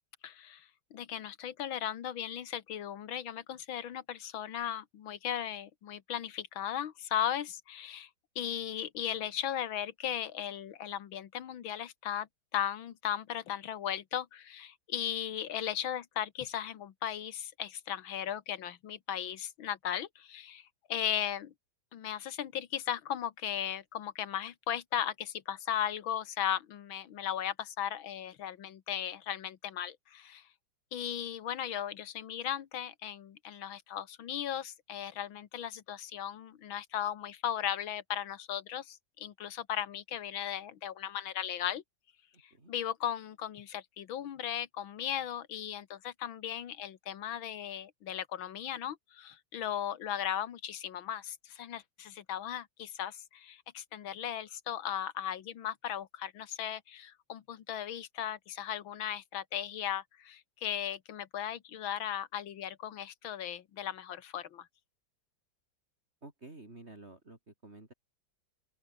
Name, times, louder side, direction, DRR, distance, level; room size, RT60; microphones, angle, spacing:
voice 1, 0.2-8.1 8.4-12.3 12.5-21.5 21.9-30.5 30.9-41.8 42.4-64.7, left 10 dB, 85° left, 2.1 m, -37 dB
voice 2, 42.3-42.7 66.2-67.9, right 2 dB, 30° right, 4.0 m, -51 dB
open air
omnidirectional pair, 2.1 m